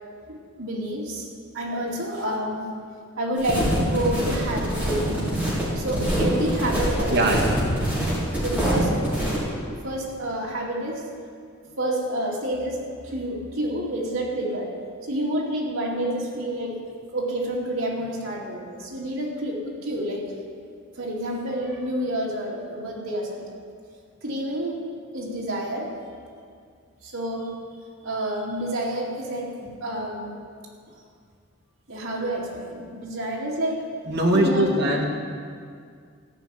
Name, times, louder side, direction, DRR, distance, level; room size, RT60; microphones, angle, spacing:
voice 1, 0.3-1.3 1.5-2.6 3.2-7.4 7.7-7.9 8.4-9.0 9.6-11.1 11.8-14.8 15.1-16.8 17.1-20.3 21.0-23.5 24.2-24.8 25.1-25.9 27.0-27.5 28.0-30.3 31.9-33.9 34.3-35.1, right 1 dB, 75° right, -3 dB, 2.6 m, -29 dB
sound 1, 3.4-9.4, right 1 dB, 10° right, 4.2 m, -25 dB
voice 2, 7.1-7.5 34.1-35.1, right 1 dB, 55° right, -2 dB, 2.1 m, -21 dB
14.0 x 6.2 x 9.3 m, 2.2 s
head